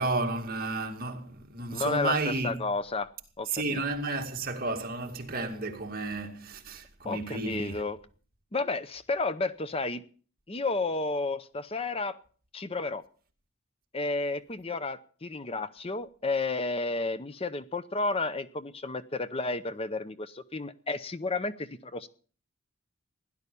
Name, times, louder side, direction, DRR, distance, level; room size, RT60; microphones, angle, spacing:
voice 1, 0.0-2.6 3.5-7.8, right 2 dB, 45° right, 2.4 m, -32 dB
voice 2, 1.7-2.2 2.4-3.1 3.4-3.8 7.0-8.0 8.5-10.0 10.5-12.2 12.5-13.0 13.9-22.1, left 3 dB, 25° left, 0.7 m, -32 dB
16.5 x 11.0 x 6.9 m
head